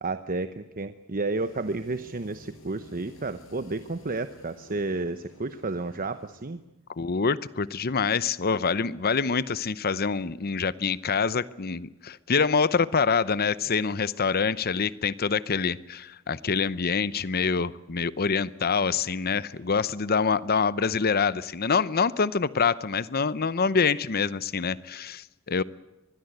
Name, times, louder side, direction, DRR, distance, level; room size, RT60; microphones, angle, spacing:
voice 1, 0.0-6.6, right 3 dB, 40° right, 11 dB, 0.9 m, -31 dB
sound 1, 1.3-6.6, left 1 dB, 70° left, 5.7 m, -53 dB
voice 2, 7.0-25.6, left 5 dB, 45° left, 17 dB, 0.7 m, -26 dB
25.0 x 21.0 x 8.0 m, 0.99 s
head